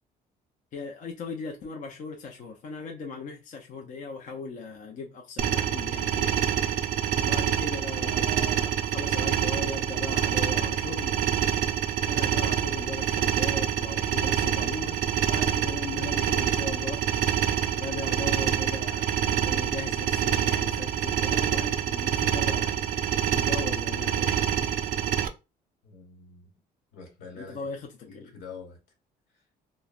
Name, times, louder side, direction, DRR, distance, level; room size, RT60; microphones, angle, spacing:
voice 1, 0.7-6.3 7.2-11.2 12.0-15.0 15.3-22.8 23.3-24.3 24.8-25.0 27.4-28.3, left 4 dB, 50° left, 0.6 m, -38 dB
sound 1, 5.4-25.3, right 10 dB, 55° right, 0.4 m, -26 dB
voice 2, 25.8-26.5 26.9-27.7 28.0-28.8, left 5 dB, 90° left, 1.2 m, -45 dB
3.1 x 2.1 x 2.4 m
cardioid pair, 110°, 17 cm